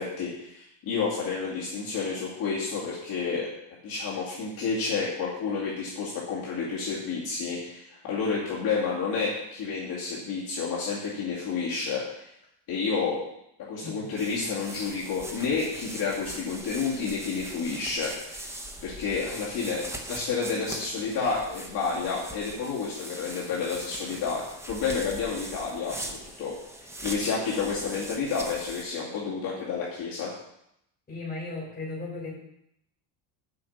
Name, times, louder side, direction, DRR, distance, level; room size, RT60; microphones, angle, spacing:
voice 1, 0.0-3.5 3.8-12.3 12.7-13.2 13.7-18.4 18.8-24.4 24.7-26.5 27.0-30.3, left 5 dB, 45° left, -7 dB, 2.4 m, -30 dB
sound 1, 14.2-28.8, right 1 dB, 5° right, 0.7 m, -41 dB
voice 2, 31.1-32.3, left 2 dB, 20° left, -5 dB, 3.9 m, -36 dB
7.8 x 5.8 x 7.1 m, 0.78 s
cardioid pair, 170°, 50 cm